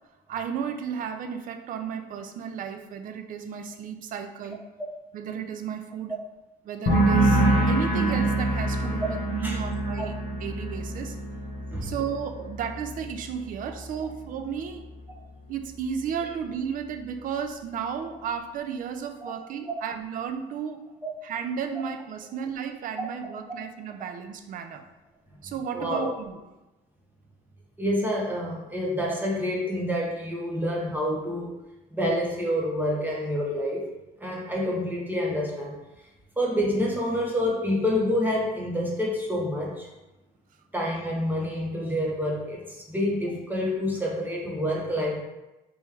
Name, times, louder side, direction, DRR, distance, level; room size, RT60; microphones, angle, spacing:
voice 1, 0.3-4.6 5.1-6.1 6.6-11.2 11.8-14.9 15.5-20.8 21.2-24.8 25.4-26.4, right 7 dB, 55° right, 7 dB, 0.4 m, -33 dB
sound 1, 6.9-14.3 14.6-15.1, right 2 dB, 45° left, 1.0 m, -26 dB
voice 2, 25.7-26.1 27.8-31.6 31.9-33.9 34.2-35.7 36.4-39.9 40.7-45.2, equal, 10° right, -2 dB, 0.9 m, -27 dB
3.4 x 3.0 x 3.3 m, 1.0 s
cardioid pair, 110°, 17 cm